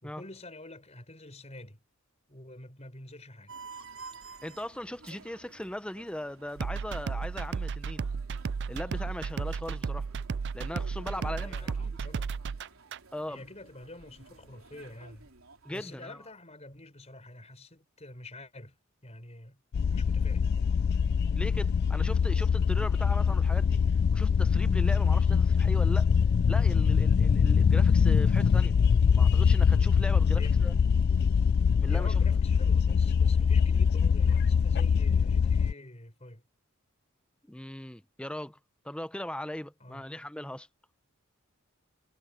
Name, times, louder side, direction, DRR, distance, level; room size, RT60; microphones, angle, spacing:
voice 1, 0.0-1.8 2.3-3.5 11.2-12.4 13.3-15.3 15.7-18.8 19.0-19.6 19.9-20.4 30.3-30.6 31.9-36.4 39.8-40.0, left 2 dB, 30° left, 4.7 m, -47 dB
sound 1, 3.5-16.2, right 4 dB, 70° right, 3.9 m, -52 dB
voice 2, 4.4-8.1 8.7-10.1 10.5-11.7 13.1-13.4 15.6-16.2 21.4-23.8 24.1-26.1 26.5-28.7 29.1-30.7 31.8-32.2 37.5-38.6 38.8-40.7, left 1 dB, 5° left, 0.7 m, -39 dB
sound 2, 6.6-13.0, right 5 dB, 55° right, 0.4 m, -34 dB
sound 3, 19.7-35.7, left 6 dB, 50° left, 0.3 m, -23 dB
head